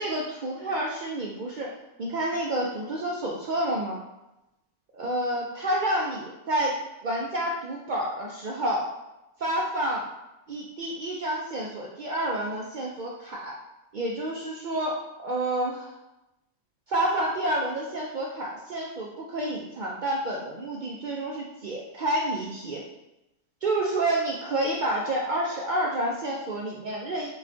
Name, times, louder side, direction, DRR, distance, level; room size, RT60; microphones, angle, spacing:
voice 1, 0.0-1.7 2.0-4.0 4.9-8.9 9.4-10.0 10.5-13.5 13.9-16.0 16.9-22.8 23.6-27.3, right 1 dB, 65° right, -2 dB, 0.5 m, -29 dB
5.4 x 2.2 x 2.6 m, 0.94 s
omnidirectional pair, 1.3 m